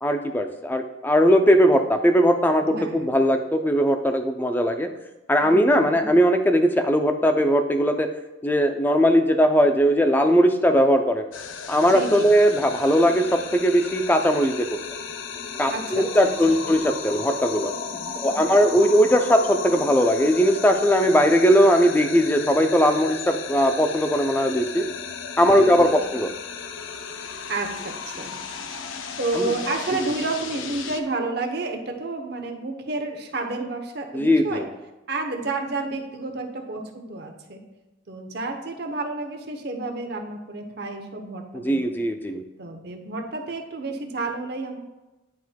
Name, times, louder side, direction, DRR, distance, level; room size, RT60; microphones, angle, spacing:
voice 1, 0.0-4.9 5.3-8.1 8.4-11.2 11.7-14.7 15.6-17.7 18.2-24.9 25.4-26.3 29.3-29.5 34.1-34.7 41.6-42.4, equal, 10° left, 6 dB, 0.4 m, -19 dB
voice 2, 2.6-3.1 5.4-6.1 11.8-12.3 15.7-16.7 17.9-18.6 25.5-26.2 27.5-28.3 29.2-34.6 35.1-37.6 38.1-41.9 42.6-44.8, right 3 dB, 55° right, 3 dB, 0.8 m, -31 dB
sound 1, 11.3-31.0, left 6 dB, 80° left, 0.5 m, -34 dB
10.5 x 4.3 x 2.2 m, 1.1 s
head